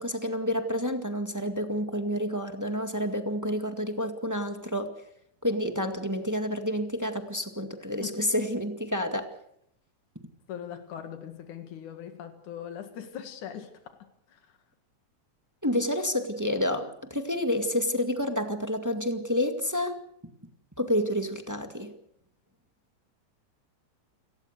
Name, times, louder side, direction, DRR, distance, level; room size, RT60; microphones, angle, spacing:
voice 1, 0.0-4.9 5.4-9.3 15.6-20.0 20.8-21.9, left 1 dB, 10° right, 6 dB, 1.3 m, -29 dB
voice 2, 8.0-8.3 10.5-14.6, left 9 dB, 90° left, 7 dB, 3.3 m, -41 dB
29.5 x 18.5 x 6.7 m, 0.72 s
omnidirectional pair, 3.4 m